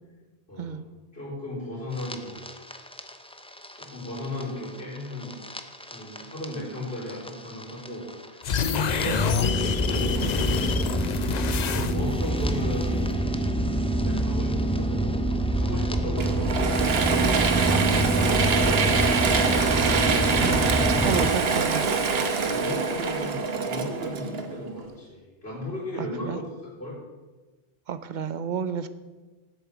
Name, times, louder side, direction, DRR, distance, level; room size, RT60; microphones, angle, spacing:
voice 1, 0.5-0.8 1.1-2.4 3.8-5.4 5.9-9.3 9.6-10.8 11.2-13.0 14.0-15.2 15.5-17.4 17.9-19.0 20.5-21.1 22.4-26.5 26.8-27.0, left 1 dB, 85° left, -11 dB, 3.9 m, -36 dB
sound 1, 1.9-21.3, right 1 dB, 10° left, 0.5 m, -27 dB
sound 2, 8.4-12.3, left 6 dB, 50° left, 0.6 m, -27 dB
Mechanisms / Drill, 16.2-24.8, right 5 dB, 75° right, 1.2 m, -25 dB
voice 2, 20.3-21.9 26.0-26.4 27.9-28.9, right 7 dB, 55° right, 12 dB, 0.7 m, -31 dB
8.2 x 7.4 x 7.0 m, 1.3 s
omnidirectional pair, 1.0 m